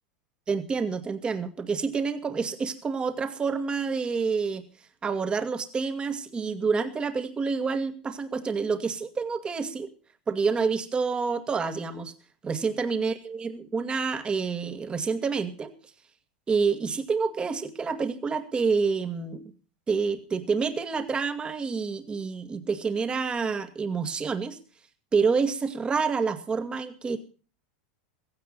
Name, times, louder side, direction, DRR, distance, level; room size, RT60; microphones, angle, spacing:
voice 1, 0.5-4.6 5.0-9.9 10.3-12.1 12.4-15.7 16.5-19.4 19.9-24.6 25.1-27.2, right 5 dB, 20° right, 9 dB, 2.1 m, -28 dB
16.5 x 15.5 x 4.1 m, 0.37 s
supercardioid pair, 130°, 5 cm